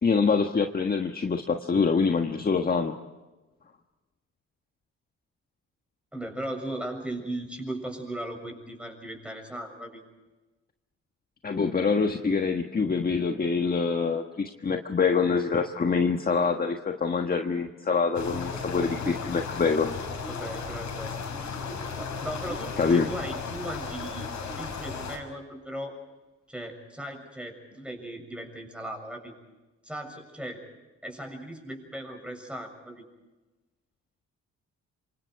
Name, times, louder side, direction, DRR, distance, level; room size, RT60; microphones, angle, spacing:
voice 1, 0.0-2.9 11.4-20.0 22.8-23.1, left 5 dB, 30° left, 4 dB, 1.5 m, -25 dB
voice 2, 6.1-10.0 20.3-21.2 21.8-25.9 26.5-29.3 29.8-30.6 31.0-33.0, right 1 dB, 5° right, 4 dB, 7.2 m, -37 dB
sound 1, 18.1-25.2, left 5 dB, 70° left, 6.0 m, -35 dB
28.0 x 25.0 x 4.8 m, 1.2 s
cardioid pair, 90°, 30 cm